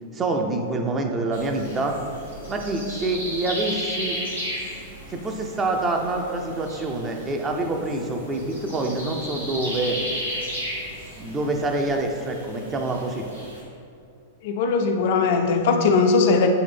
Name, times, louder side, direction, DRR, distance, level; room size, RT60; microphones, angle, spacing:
voice 1, 0.1-2.0 2.5-4.2 5.1-10.0 11.2-13.3, right 2 dB, 20° right, 2 dB, 0.6 m, -26 dB
sound 1, 1.3-13.6, equal, 85° right, 1.4 m, -35 dB
voice 2, 14.4-16.5, left 4 dB, 55° left, 4 dB, 0.5 m, -19 dB
8.4 x 3.3 x 3.4 m, 2.4 s
figure-of-eight pair, 100°, 0 cm